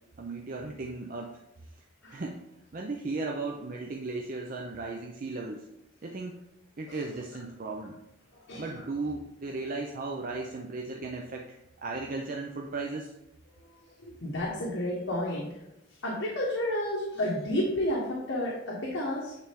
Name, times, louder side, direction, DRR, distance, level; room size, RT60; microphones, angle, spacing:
voice 1, 0.2-1.3 2.1-2.4 2.7-5.7 6.0-6.4 6.8-8.0 8.6-13.1, right 3 dB, 45° right, 1 dB, 0.5 m, -36 dB
voice 2, 8.3-8.8 13.7-15.5 16.0-19.4, left 1 dB, 75° left, -4 dB, 1.4 m, -31 dB
8.9 x 3.4 x 3.5 m, 0.87 s
head